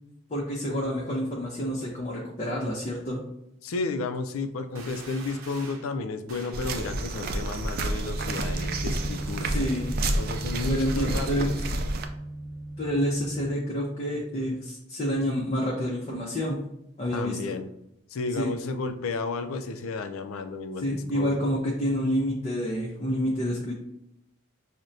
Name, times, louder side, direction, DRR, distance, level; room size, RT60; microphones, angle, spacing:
voice 1, 0.3-3.2 9.4-9.9 10.7-11.5 12.8-16.6 17.0-17.5 18.4-18.5 20.8-23.7, equal, 30° left, -3 dB, 0.5 m, -28 dB
voice 2, 3.6-9.5 10.2-11.6 17.1-17.7 18.1-21.5, left 3 dB, 90° left, 8 dB, 0.4 m, -32 dB
sound 1, 4.7-5.9 6.3-6.6, right 4 dB, 85° right, 0.7 m, -45 dB
sound 2, 6.5-12.1, right 2 dB, 45° right, 0.3 m, -30 dB
sound 3, 8.1-13.5, right 1 dB, 5° left, 1.1 m, -37 dB
6.1 x 2.1 x 2.6 m, 0.80 s
head